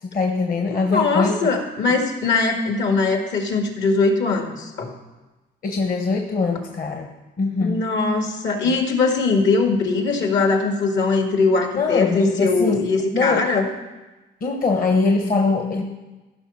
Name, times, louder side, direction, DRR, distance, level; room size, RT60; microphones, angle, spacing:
voice 1, 0.0-1.5 1.9-2.0 5.6-7.8 8.6-8.8 11.8-13.5 14.4-15.8, left 4 dB, 45° left, 3 dB, 1.1 m, -22 dB
voice 2, 0.9-4.9 7.6-13.7, left 3 dB, 70° left, 4 dB, 1.9 m, -21 dB
15.0 x 5.8 x 5.6 m, 1.1 s
cardioid pair, 90°, 20 cm